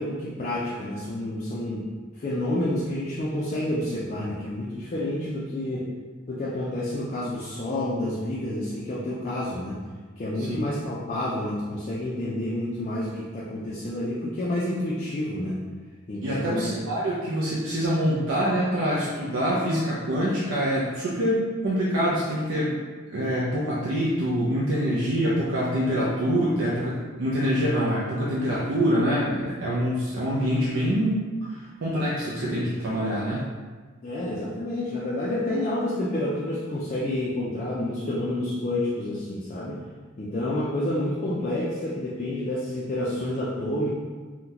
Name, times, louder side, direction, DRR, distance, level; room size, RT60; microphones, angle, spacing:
voice 1, 0.0-1.9 2.2-5.9 6.3-9.8 10.2-15.6 16.1-16.8 34.0-39.8 40.2-43.9, left 1 dB, 35° left, -7 dB, 0.4 m, -29 dB
voice 2, 16.2-22.8 23.1-33.5, equal, 70° right, -6 dB, 0.5 m, -25 dB
3.8 x 2.2 x 2.8 m, 1.4 s
head